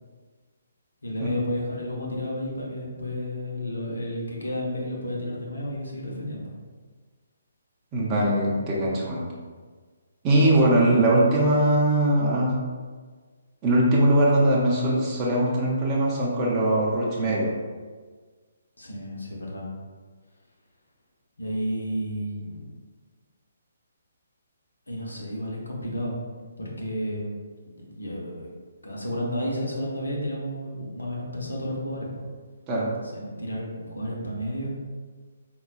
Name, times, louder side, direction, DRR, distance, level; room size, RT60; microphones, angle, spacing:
voice 1, 1.0-6.5 18.8-19.7 21.4-22.7 24.9-26.2 26.6-27.3 27.6-28.5 28.8-32.3 33.0-34.7, equal, 85° left, -2 dB, 0.8 m, -32 dB
voice 2, 7.9-9.2 10.2-12.5 13.6-17.5 32.7-32.9, right 1 dB, 20° right, -5 dB, 0.6 m, -21 dB
3.8 x 2.3 x 2.2 m, 1.5 s
figure-of-eight pair, 135°, 0 cm